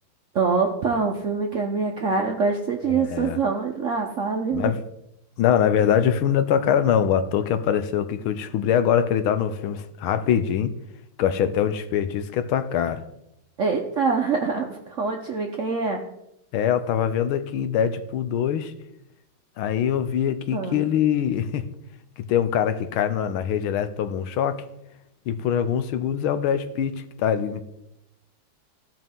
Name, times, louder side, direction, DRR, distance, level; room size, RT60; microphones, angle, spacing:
voice 1, 0.3-4.8 13.6-16.0 20.5-20.8, right 4 dB, 60° right, 0.8 m, -25 dB
voice 2, 2.8-3.4 4.5-4.8 5.4-10.7 11.2-13.0 16.5-18.7 19.6-21.7 22.3-24.6 25.3-27.6, left 9 dB, 80° left, 1.5 m, -23 dB
16.0 x 5.4 x 3.5 m
omnidirectional pair, 2.3 m